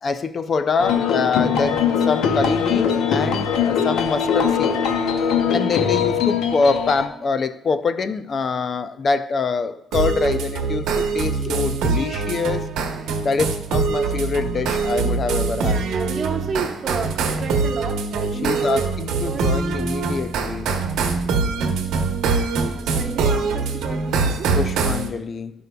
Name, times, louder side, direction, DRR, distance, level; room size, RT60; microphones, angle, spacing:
voice 1, 0.0-4.8 5.5-12.7 13.2-15.9 18.4-20.7 24.5-25.5, left 4 dB, 45° left, 0.4 m, -24 dB
sound 1, 0.8-7.1, left 7 dB, 85° left, 0.7 m, -21 dB
sound 2, 9.9-25.1, right 4 dB, 90° right, 0.9 m, -23 dB
voice 2, 12.9-13.3 15.6-18.8 19.1-19.5 22.7-24.5, right 5 dB, 50° right, 0.9 m, -32 dB
13.0 x 5.3 x 2.3 m
cardioid pair, 90°, 0 cm